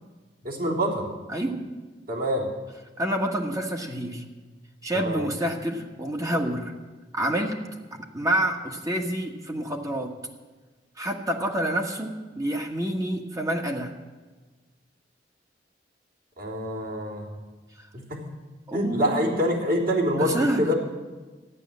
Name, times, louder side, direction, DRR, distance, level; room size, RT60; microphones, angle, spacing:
voice 1, 0.4-1.1 2.1-2.5 4.9-5.3 16.4-17.3 17.9-18.2 18.7-20.7, equal, 55° right, -3 dB, 3.6 m, -26 dB
voice 2, 3.0-4.2 4.8-6.7 7.1-7.6 8.1-10.1 11.0-13.9 17.8-17.9 18.7-19.4 20.2-20.7, right 1 dB, 20° right, 2 dB, 1.6 m, -28 dB
14.0 x 11.0 x 7.6 m, 1.3 s
head